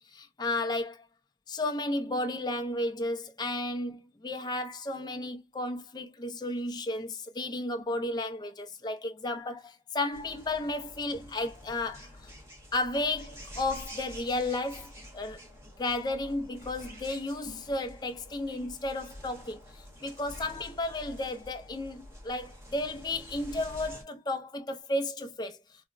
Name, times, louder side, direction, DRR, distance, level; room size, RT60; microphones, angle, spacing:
voice 1, 0.1-1.0 1.5-12.3 12.7-15.4 15.8-25.6, left 2 dB, 25° left, 0.4 m, -33 dB
sound 1, 10.1-24.0, equal, 15° right, 0.9 m, -48 dB
4.1 x 2.1 x 2.4 m
head